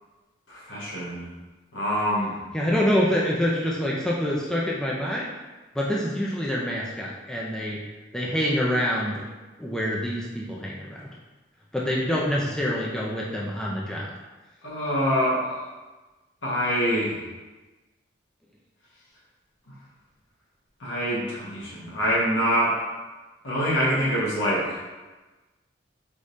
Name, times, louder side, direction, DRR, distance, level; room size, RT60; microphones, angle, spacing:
voice 1, 0.5-1.3 1.7-2.3 14.6-15.7 16.4-17.2 20.8-22.9 23.4-24.8, equal, 80° left, -6 dB, 1.3 m, -25 dB
voice 2, 2.5-5.3 5.7-7.8 8.1-9.2 9.6-11.1 11.7-14.1, equal, 5° left, -5 dB, 0.4 m, -26 dB
5.0 x 3.1 x 2.6 m, 1.2 s
head